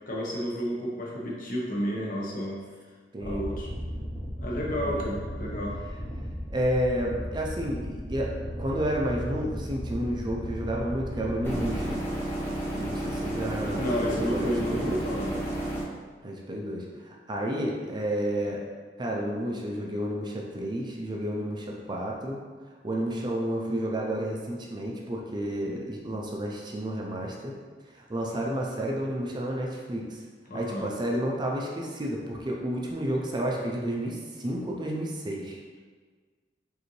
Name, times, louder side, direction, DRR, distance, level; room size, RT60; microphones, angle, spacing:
voice 1, 0.1-2.6 3.2-3.7 4.4-5.8 13.8-15.4 30.5-30.9, equal, 50° left, -3 dB, 0.8 m, -31 dB
voice 2, 3.1-3.4 4.8-5.0 6.5-12.0 12.7-15.0 16.2-18.6 19.0-22.4 22.8-27.6 27.9-30.2 30.5-35.6, right 1 dB, 25° right, -1 dB, 0.5 m, -31 dB
sound 1, 3.2-12.0, equal, 30° left, 1.3 m, -36 dB
sound 2, 11.4-15.8, right 1 dB, 15° left, 0.8 m, -32 dB
5.0 x 2.7 x 3.1 m, 1.6 s
head